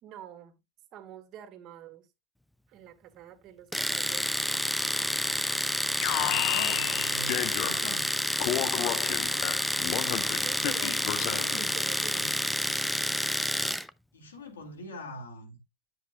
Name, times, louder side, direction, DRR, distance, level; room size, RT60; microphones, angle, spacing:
voice 1, 0.0-0.6 0.9-2.1 2.7-4.4 8.7-9.1 10.4-12.3, right 11 dB, 45° right, 2.0 m, -47 dB
Domestic sounds home sounds, 3.7-13.9, equal, ahead, 0.4 m, -29 dB
Alarm, 6.0-8.0 8.4-11.7, left 14 dB, 50° left, 0.7 m, -32 dB
voice 2, 6.1-8.1 11.1-11.7 12.2-12.3 14.1-15.6, left 1 dB, 85° left, 3.2 m, -42 dB
9.5 x 7.9 x 2.2 m
hypercardioid pair, 95°, 0 cm